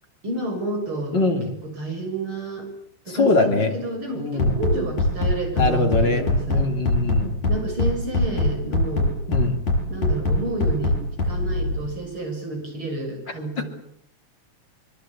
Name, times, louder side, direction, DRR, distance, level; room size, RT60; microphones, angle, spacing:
voice 1, 0.2-1.2 1.6-2.7 3.1-6.6 7.5-9.1 9.9-13.7, right 2 dB, 40° right, 3 dB, 7.7 m, -30 dB
voice 2, 1.1-1.5 3.1-3.7 4.2-4.6 5.6-7.4 9.3-9.6 13.6-13.7, left 3 dB, 35° left, 4 dB, 3.4 m, -22 dB
Bass drum, 4.4-11.8, left 2 dB, 65° left, 8.7 m, -21 dB
24.5 x 24.0 x 8.6 m, 0.71 s
omnidirectional pair, 3.5 m